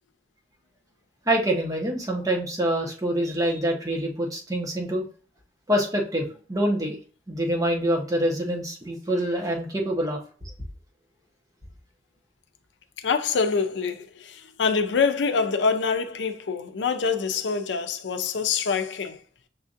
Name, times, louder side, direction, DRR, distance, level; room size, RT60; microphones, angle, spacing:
voice 1, 1.3-5.0 5.7-7.0 7.3-10.2, right 1 dB, 20° right, 0.9 m, -25 dB
voice 2, 13.0-19.2, left 5 dB, 85° left, 0.5 m, -25 dB
7.2 x 2.5 x 2.5 m
head